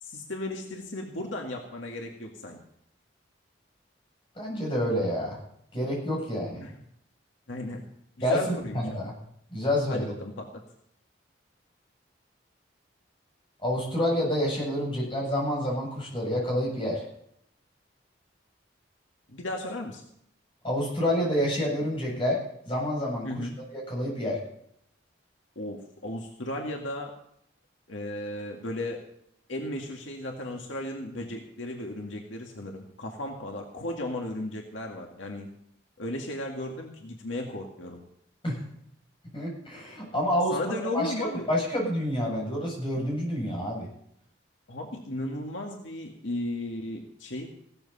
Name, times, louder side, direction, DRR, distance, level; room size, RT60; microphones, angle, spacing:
voice 1, 0.0-2.6 6.6-6.7 7.5-7.9 8.2-9.0 9.9-10.6 19.3-20.0 23.2-23.6 25.6-27.1 27.9-29.0 29.5-35.5 36.0-38.0 40.5-41.5 44.7-47.5, left 1 dB, 80° left, 1 dB, 2.1 m, -35 dB
voice 2, 4.4-5.4 5.7-6.6 8.2-9.1 9.5-10.1 13.6-17.0 20.6-22.4 22.7-24.4 38.4-38.6 39.3-41.1 41.5-43.9, equal, 25° left, -3 dB, 7.7 m, -28 dB
16.5 x 13.5 x 4.2 m, 0.71 s
head